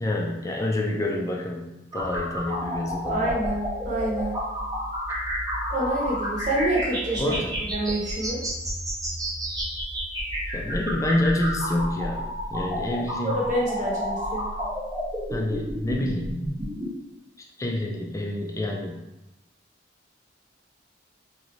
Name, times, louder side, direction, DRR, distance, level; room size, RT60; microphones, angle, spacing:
voice 1, 0.0-3.3 7.2-7.5 10.5-12.2 12.5-13.4 15.3-16.3 17.6-19.0, left 1 dB, 15° left, 0 dB, 0.4 m, -27 dB
sound 1, 1.9-16.9, equal, 20° right, 0.6 m, -31 dB
voice 2, 3.1-4.3 5.7-7.3 7.7-8.4 13.3-14.5, right 1 dB, 40° right, -5 dB, 0.9 m, -27 dB
3.0 x 2.5 x 3.1 m, 0.94 s
head